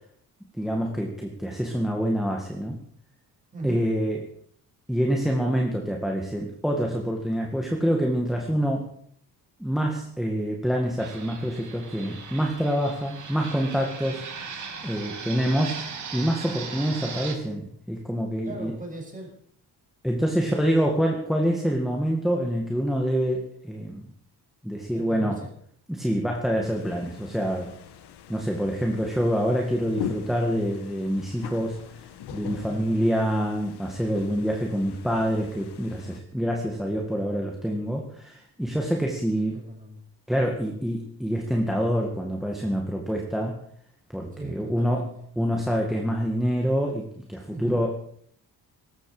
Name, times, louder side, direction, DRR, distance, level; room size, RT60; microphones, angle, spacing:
voice 1, 0.6-2.8 3.6-4.2 4.9-8.9 9.6-14.3 14.8-18.7 20.0-24.0 24.6-25.4 25.9-27.7 28.3-32.0 32.3-39.6 40.3-43.6 44.1-45.1 45.4-48.1, equal, ahead, 1 dB, 2.0 m, -26 dB
voice 2, 3.5-3.8 18.4-19.4 20.2-20.7 24.9-25.5 32.7-32.9 39.3-40.0 44.3-45.1 47.5-47.8, right 2 dB, 20° right, -1 dB, 6.7 m, -39 dB
Fixed-wing aircraft airplane, 11.0-17.4, right 5 dB, 45° right, 3.0 m, -38 dB
sound 1, 26.6-36.2, left 9 dB, 80° left, 1.6 m, -41 dB
19.0 x 14.5 x 5.0 m, 0.62 s
cardioid pair, 155°, 40 cm